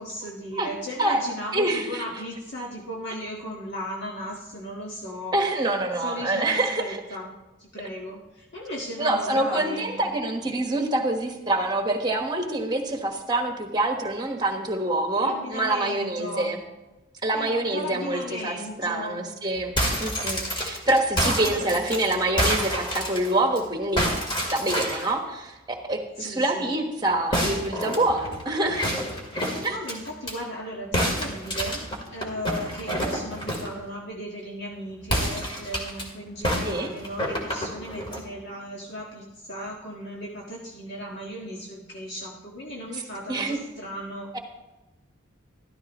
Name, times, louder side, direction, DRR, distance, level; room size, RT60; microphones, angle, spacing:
voice 1, 0.0-5.4 6.0-7.3 7.6-10.1 15.2-16.6 17.3-19.3 21.2-21.7 26.2-26.7 29.7-44.4, equal, 55° left, -3 dB, 1.6 m, -36 dB
voice 2, 1.5-2.0 5.3-7.0 9.0-16.6 17.2-19.7 20.0-24.1 24.3-25.5 25.9-28.8 29.6-29.8 36.6-36.9 43.3-43.6 44.3-44.4, right 2 dB, 20° right, 4 dB, 1.3 m, -26 dB
sound 1, 19.6-23.6 24.0-25.1 27.3-30.3 30.9-33.8 35.0-36.0 36.4-38.2, equal, 25° left, 2.2 m, -28 dB
13.5 x 13.0 x 3.0 m, 1.1 s
head